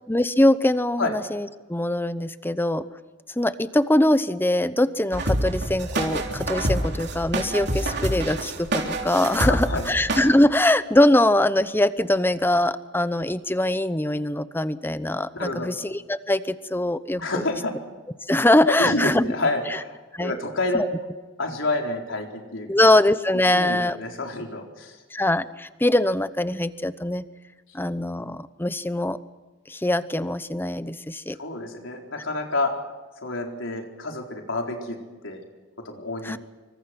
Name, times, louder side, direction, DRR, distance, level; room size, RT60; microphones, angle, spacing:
voice 1, 0.1-2.9 3.4-17.4 18.3-19.3 20.1-20.3 20.7-20.9 22.7-24.0 25.1-27.2 27.7-29.2 29.7-31.4 36.2-36.4, left 1 dB, 10° left, 14 dB, 0.8 m, -22 dB
sound 1, 5.1-10.3, right 1 dB, 60° right, 3.4 m, -27 dB
voice 2, 9.4-9.8 15.3-15.7 17.2-17.8 18.6-20.8 21.4-22.7 23.3-25.0 31.4-32.7 33.2-35.0 35.2-35.4 35.8-36.4, left 2 dB, 85° left, 2 dB, 4.1 m, -28 dB
26.5 x 24.5 x 6.1 m, 1.3 s
head